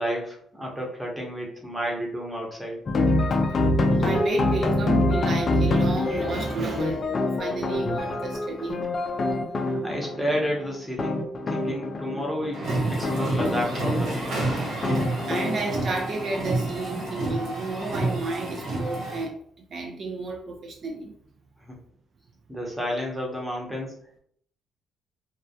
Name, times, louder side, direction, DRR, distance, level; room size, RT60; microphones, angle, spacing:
voice 1, 0.0-2.8 9.8-12.6 12.9-14.3 21.6-21.7 22.5-24.0, equal, 5° right, -1 dB, 0.8 m, -31 dB
sound 1, 2.9-16.4, left 2 dB, 45° left, 0.4 m, -26 dB
voice 2, 4.0-8.9 15.3-19.4 19.7-21.1, right 3 dB, 55° right, 2 dB, 0.3 m, -31 dB
sound 2, 12.5-19.2, right 2 dB, 75° right, 1.0 m, -29 dB
2.2 x 2.1 x 2.7 m, 0.64 s
cardioid pair, 90°, 0 cm